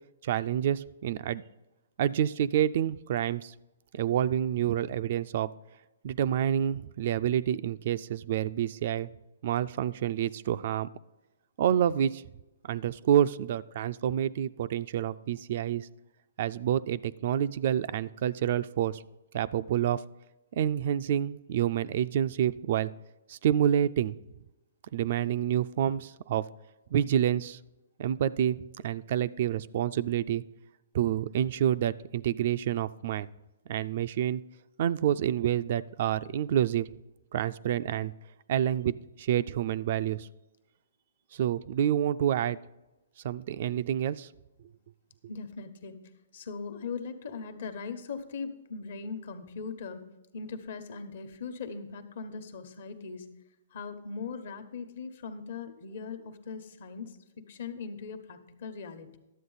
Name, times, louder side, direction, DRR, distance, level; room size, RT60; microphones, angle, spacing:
voice 1, 0.2-1.4 2.0-3.5 3.9-5.5 6.0-9.1 9.4-10.9 11.6-12.2 12.6-15.9 16.4-19.0 19.3-20.0 20.6-22.9 23.3-24.2 24.9-26.4 26.9-27.6 28.0-28.6 28.8-30.4 30.9-33.3 33.7-34.4 34.8-36.9 37.3-38.1 38.5-40.3 41.3-42.6 43.2-44.3, right 10 dB, 50° right, 15 dB, 0.3 m, -28 dB
voice 2, 45.3-46.0 46.3-50.0 50.3-53.3 53.7-59.2, left 5 dB, 60° left, 8 dB, 1.1 m, -40 dB
11.0 x 7.8 x 4.0 m, 1.0 s
hypercardioid pair, 145°, 0 cm